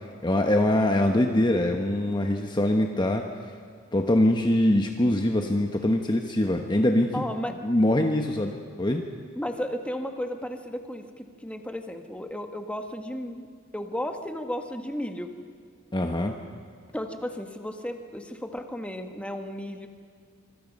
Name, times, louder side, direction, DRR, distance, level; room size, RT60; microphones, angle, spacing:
voice 1, 0.2-3.2 3.9-7.1 7.6-9.0 15.9-16.4, left 1 dB, 20° left, 3 dB, 1.2 m, -23 dB
voice 2, 7.1-7.5 9.3-13.5 13.7-15.3 16.9-19.9, left 1 dB, 5° left, 5 dB, 1.6 m, -34 dB
26.0 x 24.5 x 5.4 m, 2.2 s
head